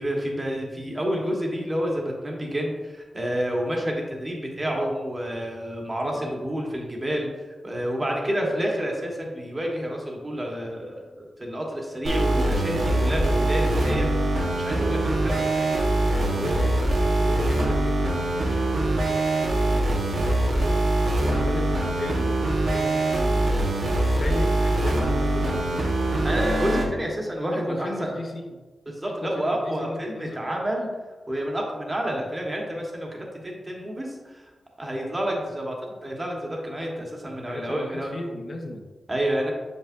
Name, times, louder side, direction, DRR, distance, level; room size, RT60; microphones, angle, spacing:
voice 1, 0.0-7.3 7.6-15.7 26.2-28.1 28.9-30.9 31.3-34.5 34.8-35.8 36.0-38.1 39.1-39.5, equal, 20° right, -1 dB, 1.3 m, -29 dB
voice 2, 8.0-8.5 14.8-15.1 16.3-19.2 21.2-23.7 24.1-26.9 27.5-28.6 29.1-30.5 37.5-38.9, left 2 dB, 45° left, 3 dB, 0.8 m, -36 dB
sound 1, 12.0-26.9, right 1 dB, 80° right, 1.2 m, -23 dB
7.1 x 5.5 x 2.6 m, 1.3 s
wide cardioid pair, 115°, 0 cm